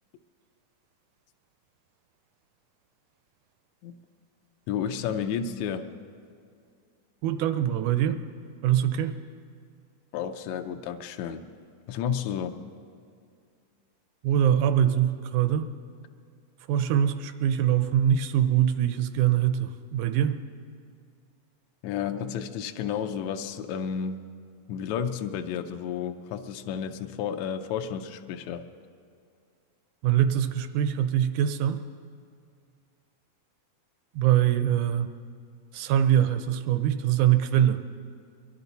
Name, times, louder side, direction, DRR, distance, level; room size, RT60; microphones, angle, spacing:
voice 1, 4.7-5.8 10.1-11.4 11.9-12.6 21.8-24.2 24.7-28.6, left 8 dB, 80° left, 6 dB, 1.6 m, -31 dB
voice 2, 7.2-8.2 8.6-9.2 14.2-15.7 16.7-20.4 30.0-31.8 34.2-35.1 35.7-37.8, right 10 dB, 80° right, 9 dB, 1.8 m, -23 dB
23.0 x 12.0 x 4.0 m, 2.2 s
omnidirectional pair, 3.9 m